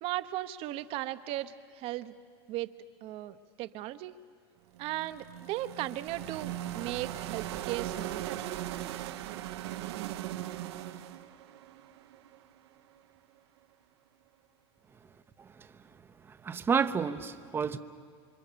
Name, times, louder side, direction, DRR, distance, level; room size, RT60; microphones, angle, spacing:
voice 1, 0.0-2.1 2.5-2.7 3.0-4.1 4.8-8.4, right 15 dB, 45° right, 1.1 m, -37 dB
sound 1, 4.7-12.8, right 13 dB, 75° right, 1.2 m, -39 dB
voice 2, 16.3-17.8, right 6 dB, 15° right, 0.9 m, -30 dB
28.5 x 25.0 x 7.0 m
supercardioid pair, 145°, 14 cm